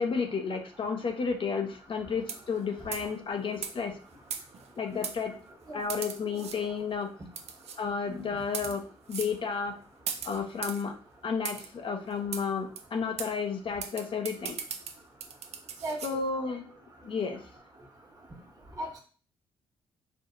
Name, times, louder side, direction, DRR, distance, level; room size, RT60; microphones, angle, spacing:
voice 1, 0.0-4.0 4.8-5.3 5.7-7.1 7.8-9.8 10.2-10.9 11.2-14.6 16.0-16.7 17.0-17.4, left 5 dB, 45° left, 4 dB, 0.7 m, -32 dB
sound 1, 2.2-2.6 2.9-3.1 3.6-3.7 4.3-4.7 5.0-5.2 5.9-6.6 7.4-7.8 8.4-8.8 9.1-9.3 10.1-10.8 11.4-11.7 12.3-12.4 12.8-12.9 13.2-13.3 13.8-16.1, right 7 dB, 65° right, 0.6 m, -37 dB
voice 2, 15.8-16.2 18.8-19.0, right 1 dB, 30° right, 0 dB, 1.5 m, -37 dB
4.4 x 2.7 x 2.5 m, 0.40 s
supercardioid pair, 55°, 12 cm